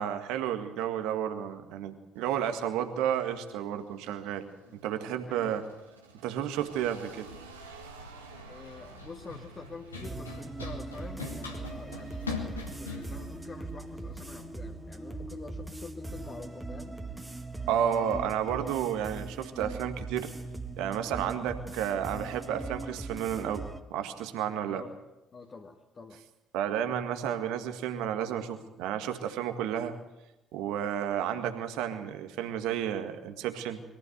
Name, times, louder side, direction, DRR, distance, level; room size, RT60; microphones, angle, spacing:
voice 1, 0.0-4.4 4.7-5.6 6.2-7.3 17.7-20.3 20.8-24.8 26.5-29.9 30.5-33.8, right 9 dB, 65° right, 7 dB, 1.8 m, -32 dB
sound 1, 2.1-11.8, right 5 dB, 80° right, 2.0 m, -54 dB
Run, 6.6-14.5, left 4 dB, 85° left, 2.2 m, -43 dB
voice 2, 8.4-17.0 24.7-25.0 25.3-26.2, left 4 dB, 35° left, 2 dB, 1.9 m, -47 dB
sound 2, 10.0-23.8, right 3 dB, 15° right, 1.9 m, -40 dB
22.0 x 14.5 x 8.1 m, 0.95 s
figure-of-eight pair, 50°, 0 cm